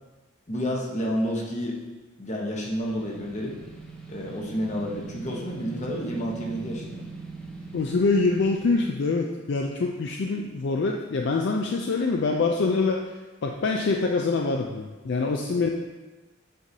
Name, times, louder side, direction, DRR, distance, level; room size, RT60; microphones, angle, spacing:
voice 1, 0.5-1.8 2.2-3.5 4.1-7.1, equal, 35° left, -2 dB, 1.0 m, -30 dB
sound 1, 2.5-8.9, right 3 dB, 5° left, 0.8 m, -41 dB
voice 2, 7.7-13.0 13.4-15.7, left 3 dB, 60° left, 2 dB, 0.4 m, -25 dB
7.6 x 5.2 x 2.8 m, 1.2 s
head